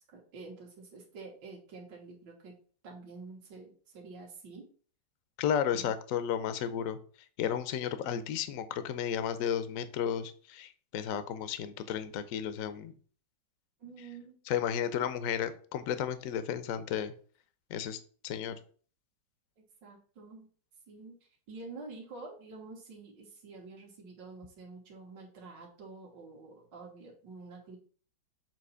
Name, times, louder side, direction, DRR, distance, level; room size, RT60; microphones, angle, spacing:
voice 1, 0.1-2.6 2.8-4.7 5.7-5.9 13.8-14.4 19.6-20.5 20.9-21.1 21.5-27.8, right 3 dB, 70° right, -2 dB, 2.2 m, -48 dB
voice 2, 5.4-7.0 7.4-12.9 14.5-17.1 17.7-18.6, left 9 dB, 60° left, 11 dB, 0.9 m, -33 dB
7.4 x 3.0 x 5.6 m, 0.43 s
omnidirectional pair, 2.0 m